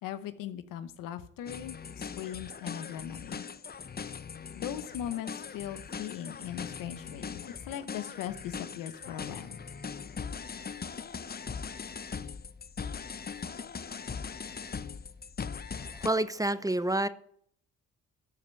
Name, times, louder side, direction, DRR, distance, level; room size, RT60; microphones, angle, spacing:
voice 1, 0.0-3.4 4.5-9.6, left 10 dB, 90° left, 0.9 m, -39 dB
sound 1, 1.5-16.1, left 6 dB, 30° left, 0.6 m, -40 dB
voice 2, 15.8-17.1, right 1 dB, 10° right, 0.7 m, -28 dB
13.0 x 4.8 x 6.9 m
supercardioid pair, 60°, 32 cm